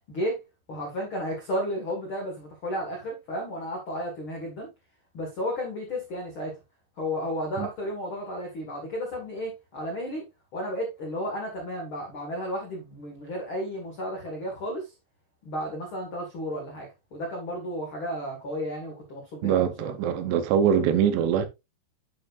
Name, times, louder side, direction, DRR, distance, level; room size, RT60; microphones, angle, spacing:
voice 1, 0.1-0.4 0.7-4.7 5.1-6.6 7.0-10.2 10.5-14.9 15.4-19.9, equal, 70° left, 1.2 m, -33 dB
voice 2, 19.4-21.5, right 8 dB, 80° right, 2.8 m, -23 dB
11.5 x 4.7 x 2.4 m
omnidirectional pair, 5.1 m